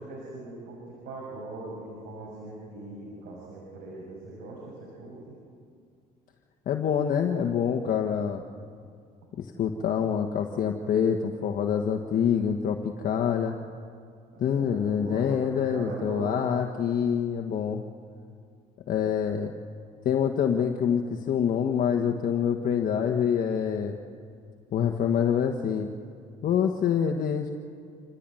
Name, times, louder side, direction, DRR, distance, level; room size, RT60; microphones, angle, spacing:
voice 1, 0.0-5.4 14.3-16.5, right 2 dB, 85° right, -4 dB, 6.7 m, -41 dB
voice 2, 6.6-8.4 9.4-13.5 14.4-17.8 18.9-19.5 20.0-24.0 24.7-25.9 26.4-27.5, left 8 dB, 55° left, 3 dB, 1.4 m, -26 dB
27.5 x 15.0 x 9.1 m, 2.3 s
cardioid pair, 110°, 17 cm